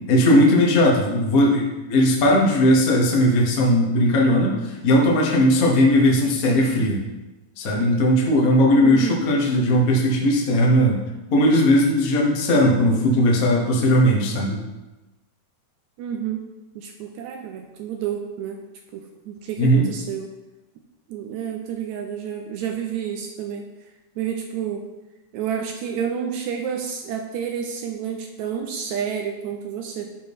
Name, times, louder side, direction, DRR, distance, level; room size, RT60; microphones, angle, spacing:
voice 1, 0.1-7.0 7.6-11.0 11.3-14.6 19.6-19.9, equal, 90° left, -2 dB, 0.7 m, -18 dB
voice 2, 8.8-9.2 16.0-16.4 16.7-18.6 18.9-20.3 21.1-23.7 24.2-24.8 25.3-30.1, right 8 dB, 80° right, 3 dB, 1.7 m, -30 dB
11.5 x 4.4 x 3.5 m, 1.1 s
omnidirectional pair, 3.8 m